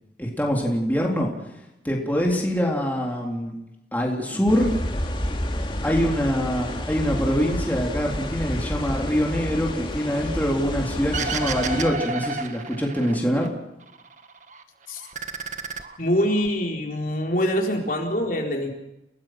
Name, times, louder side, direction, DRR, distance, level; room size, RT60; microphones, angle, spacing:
voice 1, 0.2-1.3 1.8-3.6 3.9-4.7 5.8-13.5, equal, 10° left, -1 dB, 3.7 m, -24 dB
sound 1, 4.5-11.9, left 1 dB, 30° left, 2.6 m, -30 dB
sound 2, 11.1-13.5 13.8-14.6 15.0-16.5, right 4 dB, 45° right, 1.7 m, -31 dB
voice 2, 16.0-18.7, equal, 50° left, 1 dB, 4.2 m, -24 dB
30.0 x 19.5 x 6.2 m, 0.88 s
head